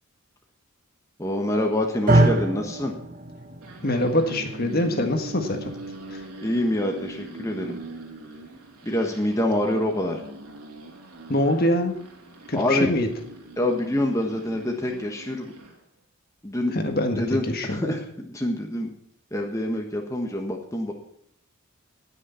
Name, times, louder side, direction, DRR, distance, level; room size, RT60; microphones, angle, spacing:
voice 1, 1.2-2.9 6.4-7.8 8.8-10.2 12.5-12.9 13.6-15.5 16.4-16.7 17.2-18.0 18.3-18.9 19.3-20.9, left 1 dB, 15° left, 1 dB, 1.4 m, -26 dB
sound 1, 2.1-10.3, right 1 dB, 40° right, 0.9 m, -28 dB
sound 2, 3.5-15.8, right 2 dB, 85° right, 3.0 m, -41 dB
voice 2, 3.8-5.7 6.1-6.2 11.3-12.0 12.5-13.1 16.7-17.8, left 1 dB, 45° left, 5 dB, 1.6 m, -24 dB
19.0 x 6.6 x 5.7 m, 0.70 s
head